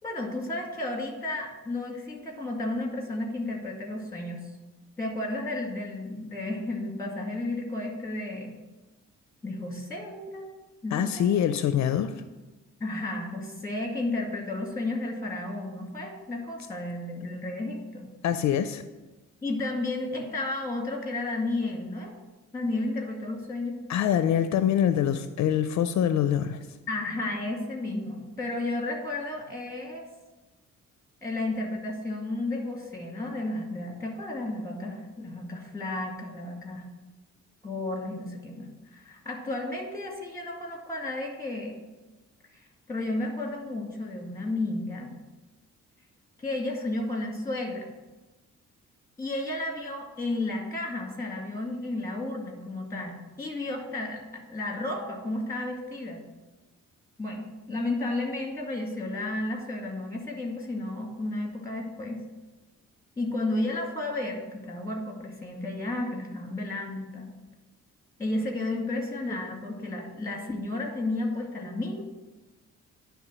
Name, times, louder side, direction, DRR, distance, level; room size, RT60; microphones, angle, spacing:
voice 1, 0.0-4.5 5.0-8.6 9.4-10.5 10.8-11.3 12.8-18.1 19.4-22.1 22.5-23.8 26.9-30.1 31.2-36.9 37.6-41.8 42.5-45.2 46.4-47.9 49.2-56.2 57.2-62.2 63.2-67.4 68.2-72.0, left 2 dB, 10° left, 1 dB, 1.9 m, -32 dB
voice 2, 10.9-12.1 18.2-18.8 23.9-26.6, left 9 dB, 70° left, 10 dB, 0.5 m, -24 dB
10.5 x 3.5 x 6.1 m, 1.2 s
cardioid pair, 115°, 30 cm